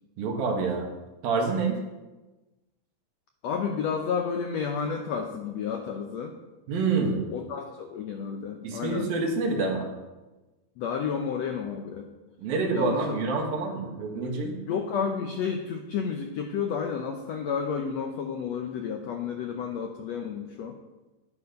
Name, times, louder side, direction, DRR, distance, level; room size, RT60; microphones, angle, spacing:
voice 1, 0.2-0.9 1.2-1.8 6.7-7.2 8.6-9.9 12.4-14.6, right 4 dB, 80° right, 1 dB, 3.6 m, -27 dB
voice 2, 3.4-6.4 7.3-9.1 10.8-12.1 12.7-13.2 14.7-20.8, left 6 dB, 80° left, 4 dB, 1.5 m, -31 dB
11.5 x 9.9 x 5.3 m, 1.1 s
omnidirectional pair, 4.1 m